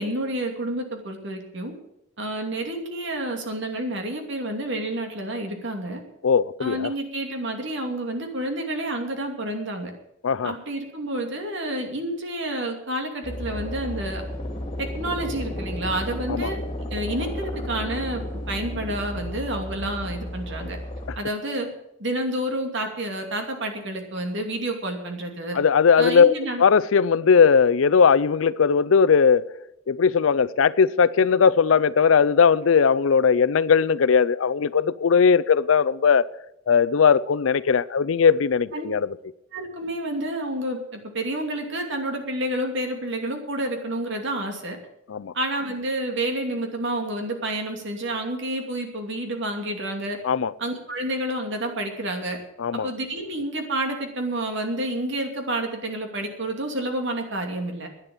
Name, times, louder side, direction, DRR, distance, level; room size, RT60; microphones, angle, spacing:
voice 1, 0.0-1.7 2.2-6.0 6.6-9.9 10.4-14.2 14.8-16.6 16.9-20.8 21.2-21.7 22.0-25.6 26.0-26.6 38.7-38.9 39.5-44.8 45.3-50.2 50.6-52.4 52.8-57.9, right 1 dB, 65° right, 2.6 m, -29 dB
voice 2, 6.2-6.9 10.2-10.5 16.3-16.5 21.1-21.2 25.5-26.3 26.6-29.4 29.9-36.3 36.7-39.1 45.1-45.3 50.2-50.5 52.6-52.9, left 6 dB, 85° left, 0.5 m, -19 dB
sound 1, 13.2-21.2, left 1 dB, 25° left, 2.7 m, -33 dB
11.0 x 9.9 x 8.8 m
head